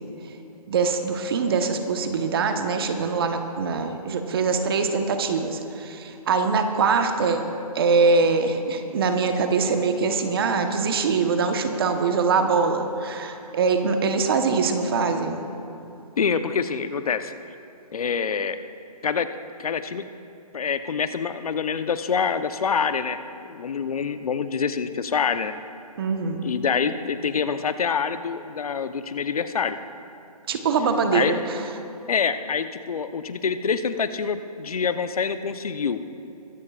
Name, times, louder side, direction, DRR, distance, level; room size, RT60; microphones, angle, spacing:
voice 1, 0.7-7.4 7.7-15.4 26.0-26.4 30.5-31.7, right 4 dB, 35° right, 6 dB, 1.1 m, -23 dB
voice 2, 16.2-17.3 17.9-18.6 19.0-19.3 19.6-20.1 20.5-25.5 26.4-29.8 31.1-31.3 32.1-36.0, left 6 dB, 65° left, 10 dB, 0.9 m, -26 dB
23.0 x 14.5 x 2.5 m, 2.9 s
hypercardioid pair, 160°, 20 cm